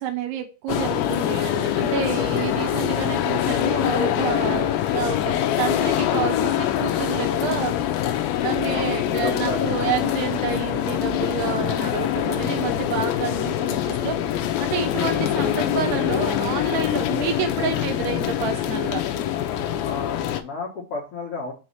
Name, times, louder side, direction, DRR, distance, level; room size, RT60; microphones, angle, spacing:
voice 1, 0.0-7.8 8.4-14.2 14.6-19.0, right 8 dB, 80° right, 6 dB, 2.7 m, -29 dB
sound 1, 0.7-20.4, left 11 dB, 85° left, 2.1 m, -24 dB
voice 2, 8.7-9.9 11.3-11.6 19.8-21.5, left 3 dB, 70° left, -4 dB, 1.4 m, -32 dB
6.3 x 3.2 x 5.5 m, 0.32 s
omnidirectional pair, 4.9 m